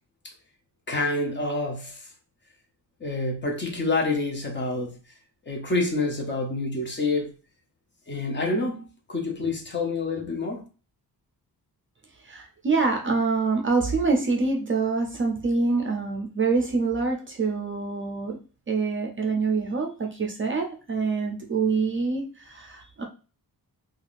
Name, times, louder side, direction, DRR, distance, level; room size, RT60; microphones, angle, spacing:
voice 1, 0.9-2.1 3.0-5.0 5.5-7.3 8.1-10.6, left 3 dB, 30° left, 0.6 m, -27 dB
voice 2, 12.2-18.4 18.7-23.0, right 4 dB, 35° right, 0.4 m, -25 dB
3.3 x 2.3 x 2.4 m
wide cardioid pair, 165°, 38 cm